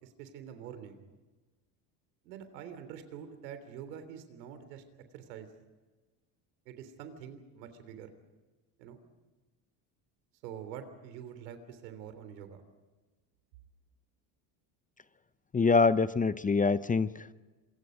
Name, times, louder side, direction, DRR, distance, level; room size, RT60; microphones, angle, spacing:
voice 1, 0.0-1.0 2.2-4.8 5.1-5.5 6.6-8.1 8.8-9.0 10.4-12.6, right 8 dB, 85° right, 9 dB, 3.4 m, -46 dB
voice 2, 15.5-17.3, left 4 dB, 15° left, 15 dB, 0.7 m, -25 dB
27.0 x 23.0 x 5.2 m, 1.3 s
supercardioid pair, 90°, 49 cm